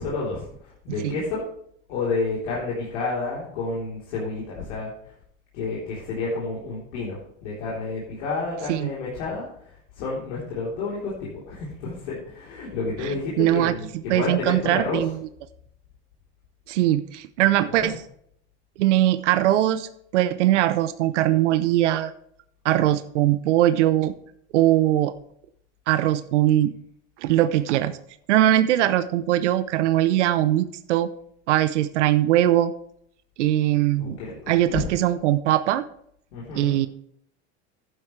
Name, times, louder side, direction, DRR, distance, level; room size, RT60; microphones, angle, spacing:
voice 1, 0.0-1.5 1.9-5.1 5.5-15.0 17.7-17.9 34.0-34.9 36.3-36.8, left 3 dB, 75° left, -6 dB, 3.7 m, -30 dB
voice 2, 13.4-13.7 14.1-15.2 16.7-18.0 18.8-22.1 22.6-24.1 24.5-25.1 25.9-26.7 27.2-28.0 28.3-31.1 31.5-32.7 33.4-34.2 34.5-35.8 36.5-36.9, right 13 dB, 85° right, 13 dB, 0.7 m, -21 dB
11.0 x 10.0 x 3.2 m, 0.68 s
supercardioid pair, 110°, 35 cm